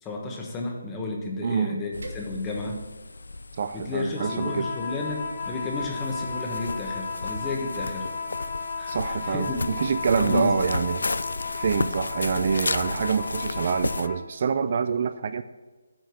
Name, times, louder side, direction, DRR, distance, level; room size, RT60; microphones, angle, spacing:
voice 1, 0.0-2.8 3.7-8.1 8.8-9.6 10.2-10.6, left 2 dB, 15° left, 0 dB, 1.1 m, -32 dB
voice 2, 1.4-1.8 3.6-4.7 8.9-11.0 11.5-15.4, right 6 dB, 45° right, 11 dB, 0.3 m, -26 dB
sound 1, 1.9-14.1, left 3 dB, 85° left, 0.4 m, -34 dB
sound 2, 2.0-2.8 3.4-4.3 5.2-8.1 9.2-9.4 9.8-10.1 11.0-11.1 11.5-11.8 12.2-12.6 13.0-13.3 13.7-13.8, right 2 dB, 80° right, 2.1 m, -50 dB
sound 3, 4.1-14.3, left 4 dB, 35° left, 0.8 m, -35 dB
7.7 x 4.5 x 6.8 m, 1.3 s
hypercardioid pair, 160°, 0 cm